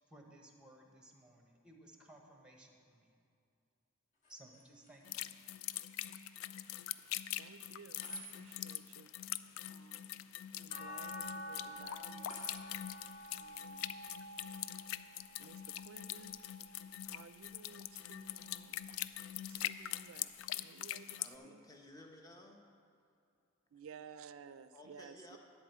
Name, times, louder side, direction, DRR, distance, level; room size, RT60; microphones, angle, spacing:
voice 1, 0.1-3.1 4.3-5.3, right 1 dB, 5° right, 2 dB, 1.0 m, -59 dB
sound 1, 4.1-16.5, left 1 dB, 40° left, 1.4 m, -58 dB
sound 2, 5.0-21.3, left 12 dB, 85° left, 0.3 m, -43 dB
voice 2, 7.4-9.1 9.7-10.2 10.6-12.4 13.4-13.9 15.4-16.4 17.1-18.9 19.4-21.6 23.7-25.4, right 6 dB, 85° right, 12 dB, 0.4 m, -56 dB
sound 3, 10.7-17.0 17.6-18.9 20.3-20.4, equal, 70° left, 2.2 m, -50 dB
voice 3, 21.2-22.6 24.7-25.4, left 1 dB, 20° left, 2 dB, 0.9 m, -55 dB
11.0 x 4.5 x 8.0 m, 2.4 s
head